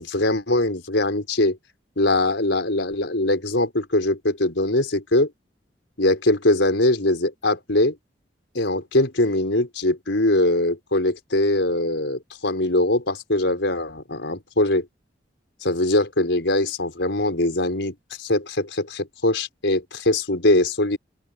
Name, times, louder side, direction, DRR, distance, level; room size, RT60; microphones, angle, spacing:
voice 1, 0.0-1.6 2.0-5.3 6.0-7.9 8.5-14.9 15.6-21.0, left 1 dB, 85° left, 5.0 m, -22 dB
open air
head